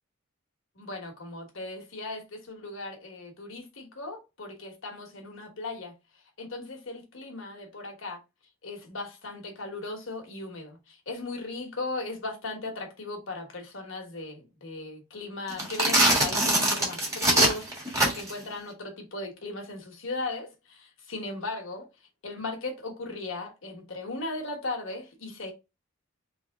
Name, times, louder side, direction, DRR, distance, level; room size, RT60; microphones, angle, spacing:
voice 1, 0.8-5.9 6.4-8.2 8.6-21.9 22.2-25.5, left 2 dB, 70° left, 1.3 m, -37 dB
sound 1, 15.5-18.4, right 1 dB, 15° right, 1.2 m, -23 dB
3.5 x 3.1 x 3.5 m
head